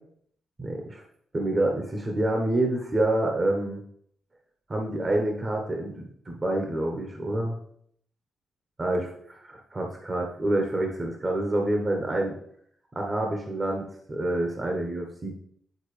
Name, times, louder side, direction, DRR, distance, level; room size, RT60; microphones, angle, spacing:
voice 1, 0.6-1.0 1.3-3.8 4.7-7.6 8.8-12.3 12.9-15.3, right 1 dB, 35° right, 1 dB, 1.2 m, -27 dB
9.1 x 3.9 x 3.4 m, 0.68 s
supercardioid pair, 50°, 0 cm